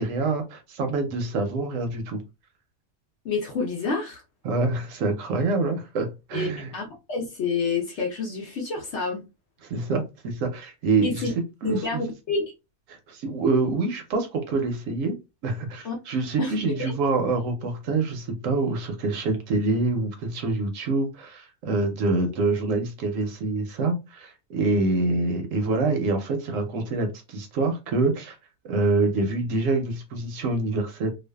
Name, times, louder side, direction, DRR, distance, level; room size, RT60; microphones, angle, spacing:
voice 1, 0.0-2.2 4.4-6.7 9.6-11.3 11.6-12.0 12.9-15.2 15.4-28.4 28.6-31.1, right 3 dB, 70° right, 0.9 m, -26 dB
voice 2, 3.2-4.2 6.3-6.5 6.7-9.3 11.0-11.3 11.6-12.5 15.8-16.0 16.4-16.9, left 4 dB, 65° left, 0.7 m, -28 dB
2.5 x 2.3 x 2.2 m
omnidirectional pair, 1.6 m